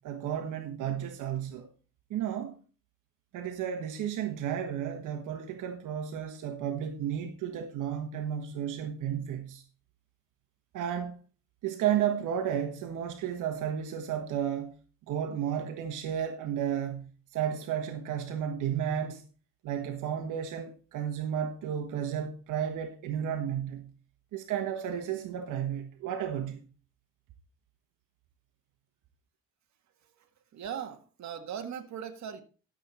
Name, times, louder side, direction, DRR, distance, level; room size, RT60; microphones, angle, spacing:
voice 1, 0.0-1.7 2.1-2.6 3.3-9.6 10.7-11.2 11.6-14.7 15.1-19.2 19.6-23.9 24.3-26.7, right 9 dB, 85° right, 1.4 m, -33 dB
voice 2, 30.0-32.4, right 8 dB, 65° right, 1.7 m, -40 dB
12.0 x 7.3 x 4.2 m
cardioid pair, 90°, 30 cm